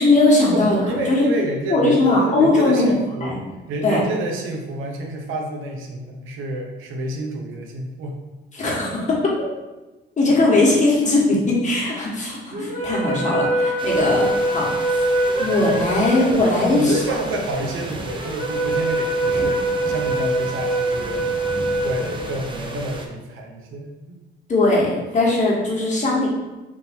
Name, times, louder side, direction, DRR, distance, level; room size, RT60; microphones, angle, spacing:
voice 1, 0.0-0.8 1.1-1.3 1.7-2.9 3.2-3.4 3.8-4.0 8.5-9.2 10.2-15.0 15.4-17.0 24.5-26.3, left 2 dB, 35° left, -4 dB, 1.4 m, -19 dB
voice 2, 0.5-3.4 3.7-8.2 8.6-9.0 14.1-14.2 15.4-15.5 16.7-19.6 19.9-21.2 21.7-24.2, right 2 dB, 90° right, 2 dB, 0.8 m, -29 dB
sound 1, 12.5-22.9, right 1 dB, 40° right, 1.3 m, -24 dB
sound 2, 13.8-23.1, right 2 dB, 25° right, 0.6 m, -35 dB
3.7 x 2.7 x 4.3 m, 1.1 s
cardioid pair, 90°, 20 cm